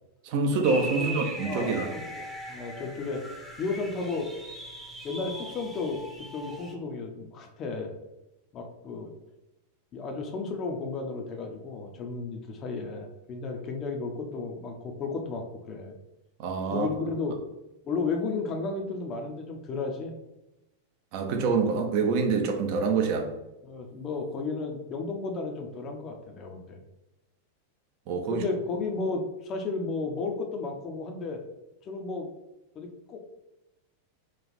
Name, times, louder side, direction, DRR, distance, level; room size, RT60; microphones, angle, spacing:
voice 1, 0.2-1.9 16.4-16.9 21.1-23.3 28.1-28.4, right 4 dB, 45° right, 4 dB, 0.6 m, -26 dB
sound 1, 0.6-6.7, right 1 dB, ahead, 0.7 m, -40 dB
voice 2, 1.0-3.2 3.6-4.3 5.0-6.0 6.3-7.9 8.5-9.1 9.9-15.9 16.7-17.4 17.8-20.1 23.6-26.8 28.3-31.4 31.9-32.3 32.7-33.2, left 3 dB, 30° left, 3 dB, 0.6 m, -33 dB
3.2 x 2.4 x 4.0 m, 0.95 s
figure-of-eight pair, 90°, 0 cm